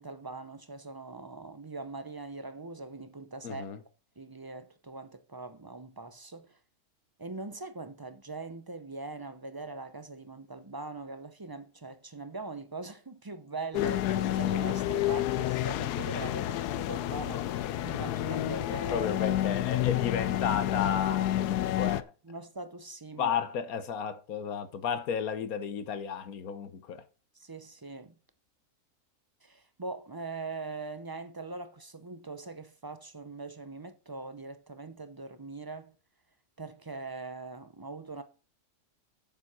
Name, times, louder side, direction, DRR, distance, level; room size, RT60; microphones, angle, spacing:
voice 1, 0.0-3.7 4.2-6.6 7.2-19.1 21.8-21.9 22.3-23.4 27.4-28.1 29.4-35.9 36.6-38.2, right 3 dB, 30° right, 0.4 m, -42 dB
voice 2, 3.4-3.8 18.9-22.1 23.2-27.1, left 7 dB, 65° left, 1.4 m, -33 dB
sound 1, 13.7-22.0, left 13 dB, 85° left, 1.2 m, -29 dB
7.3 x 7.2 x 6.1 m
omnidirectional pair, 1.7 m